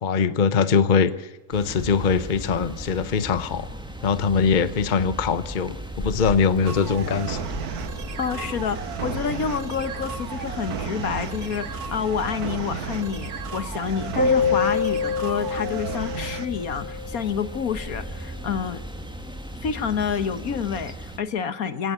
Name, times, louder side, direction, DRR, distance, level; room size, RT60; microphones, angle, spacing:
voice 1, 0.0-3.7 4.0-7.4, left 6 dB, 35° left, 14 dB, 1.0 m, -22 dB
sound 1, 1.5-21.2, equal, 5° right, 2.0 m, -37 dB
sound 2, 6.6-16.5, right 7 dB, 75° right, 1.8 m, -34 dB
voice 2, 8.2-18.8 19.6-21.9, left 7 dB, 65° left, 13 dB, 1.8 m, -28 dB
sound 3, 14.2-17.5, left 5 dB, 85° left, 4.1 m, -26 dB
23.0 x 17.5 x 9.6 m, 1.0 s
omnidirectional pair, 1.6 m